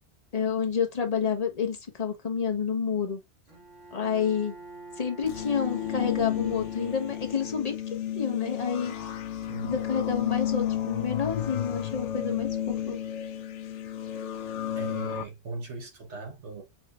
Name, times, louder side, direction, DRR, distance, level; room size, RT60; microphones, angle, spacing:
voice 1, 0.3-3.2 3.9-4.5 5.0-7.8 8.1-8.9 9.6-13.0, left 6 dB, 35° left, 1.0 m, -29 dB
Bowed string instrument, 3.5-8.0, right 3 dB, 90° right, 2.1 m, -46 dB
sound 1, 5.2-15.2, left 11 dB, 75° left, 0.9 m, -32 dB
voice 2, 9.5-9.8 14.8-16.6, right 3 dB, 70° right, 1.4 m, -38 dB
5.9 x 3.1 x 2.4 m
omnidirectional pair, 1.2 m